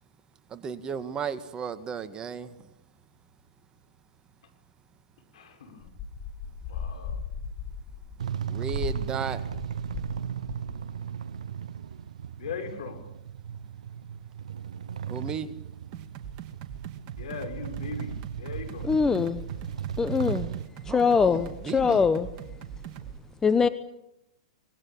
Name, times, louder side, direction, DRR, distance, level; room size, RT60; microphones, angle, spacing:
voice 1, 0.5-2.5 8.4-9.4 15.1-15.5 20.8-22.1, right 6 dB, 20° right, 1.8 m, -34 dB
voice 2, 5.3-5.9 6.7-7.2 12.4-13.0 17.2-18.9, left 6 dB, 70° left, 6.0 m, -39 dB
sound 1, 5.8-10.2 10.4-10.8, left 6 dB, 30° left, 5.7 m, -37 dB
sound 2, 8.2-20.6, right 8 dB, 75° right, 1.1 m, -36 dB
sound 3, 15.9-23.2, right 9 dB, 40° right, 2.5 m, -41 dB
voice 3, 18.8-19.4 20.0-20.5 20.8-22.3 23.4-23.7, left 5 dB, 15° left, 1.0 m, -23 dB
25.0 x 21.0 x 8.8 m
hypercardioid pair, 120°, 4 cm